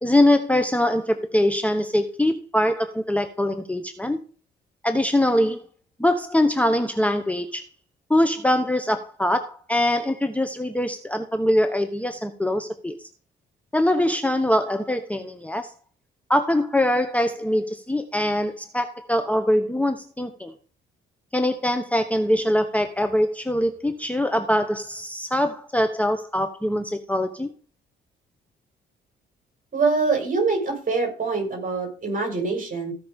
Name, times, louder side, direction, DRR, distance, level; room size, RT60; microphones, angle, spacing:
voice 1, 0.0-4.2 4.8-5.6 6.0-7.6 8.1-13.1 13.7-15.7 16.3-20.5 21.3-27.5, left 1 dB, 5° left, 8 dB, 1.0 m, -23 dB
voice 2, 29.7-32.9, right 4 dB, 45° right, 2 dB, 5.9 m, -24 dB
15.0 x 5.9 x 5.2 m, 0.40 s
cardioid pair, 90°, 20 cm